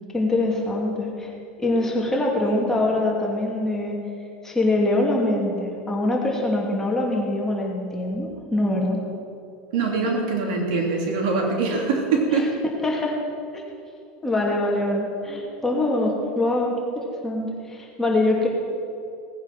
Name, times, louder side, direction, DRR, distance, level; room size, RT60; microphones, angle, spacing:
voice 1, 0.1-1.3 1.6-4.0 4.4-9.0 12.3-12.4 12.8-13.2 13.5-13.6 14.2-18.5, left 2 dB, 10° left, -2 dB, 2.6 m, -24 dB
voice 2, 9.7-12.6, right 4 dB, 80° right, 0 dB, 3.2 m, -23 dB
18.0 x 9.5 x 6.1 m, 2.6 s
supercardioid pair, 140°, 5 cm